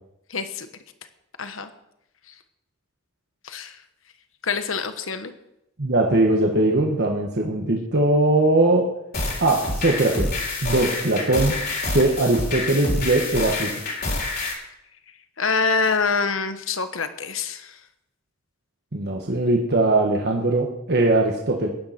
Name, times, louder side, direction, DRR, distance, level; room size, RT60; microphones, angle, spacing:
voice 1, 0.3-0.7 1.4-1.7 3.4-3.8 4.4-5.3 15.4-17.8, left 5 dB, 65° left, 10 dB, 1.2 m, -25 dB
voice 2, 5.8-8.9 9.4-10.3 10.6-11.6 11.9-13.8 18.9-21.7, right 2 dB, 50° right, 1 dB, 1.5 m, -20 dB
sound 1, 9.1-14.5, left 2 dB, 45° left, 3.6 m, -27 dB
15.5 x 10.5 x 6.0 m, 0.85 s
head